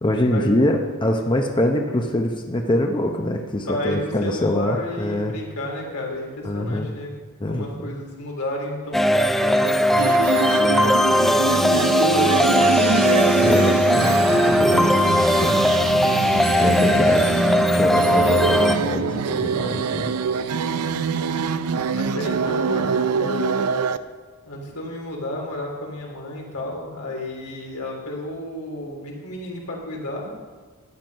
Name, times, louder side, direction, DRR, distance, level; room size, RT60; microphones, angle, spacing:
voice 1, 0.0-5.3 6.4-6.9 7.4-7.9 11.2-11.4 13.4-15.0 15.4-15.6 16.6-17.3 17.7-20.1, left 1 dB, 20° left, 3 dB, 0.7 m, -24 dB
voice 2, 3.7-7.1 7.5-10.9 11.4-13.2 21.9-23.7 24.4-30.3, left 1 dB, 85° left, -1 dB, 3.2 m, -32 dB
sound 1, 8.9-18.8, equal, ahead, 0.4 m, -18 dB
sound 2, 10.0-24.0, right 5 dB, 85° right, 0.5 m, -25 dB
sound 3, 10.4-16.2, right 5 dB, 65° right, 3.3 m, -40 dB
12.0 x 9.4 x 5.3 m, 1.4 s
head